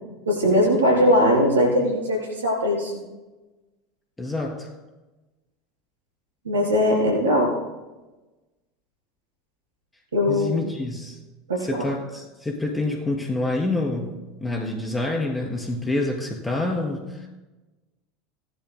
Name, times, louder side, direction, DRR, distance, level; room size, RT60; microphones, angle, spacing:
voice 1, 0.3-2.9 6.5-7.5 10.1-10.6 11.5-11.8, equal, 80° right, -2 dB, 3.6 m, -20 dB
voice 2, 4.2-4.7 10.3-11.2 11.6-17.3, left 2 dB, 10° left, -1 dB, 3.3 m, -27 dB
19.0 x 11.0 x 2.2 m, 1.1 s
figure-of-eight pair, 75°, 0 cm